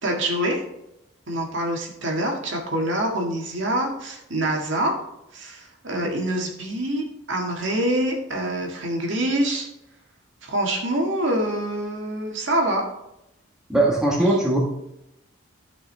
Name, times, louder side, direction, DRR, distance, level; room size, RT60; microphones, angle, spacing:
voice 1, 0.0-0.6 1.3-5.0 5.3-9.7 10.4-12.8, right 1 dB, 65° right, 1 dB, 1.8 m, -25 dB
voice 2, 13.7-14.6, right 1 dB, 5° right, -4 dB, 1.4 m, -19 dB
13.0 x 5.3 x 3.3 m, 0.85 s
head